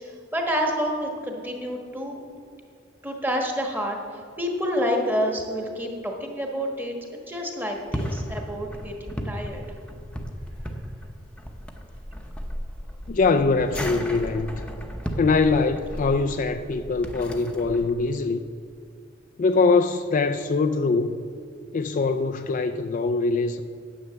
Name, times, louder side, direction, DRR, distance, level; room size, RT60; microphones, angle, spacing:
voice 1, 0.0-2.2 3.0-6.9 7.3-9.6, equal, 10° right, 1.3 m, -28 dB
sound 1, 7.7-17.9, equal, 5° left, 0.8 m, -35 dB
voice 2, 13.1-14.6 15.2-18.4 19.4-21.2 21.7-23.6, left 4 dB, 45° left, 0.4 m, -23 dB
9.6 x 7.8 x 7.0 m
head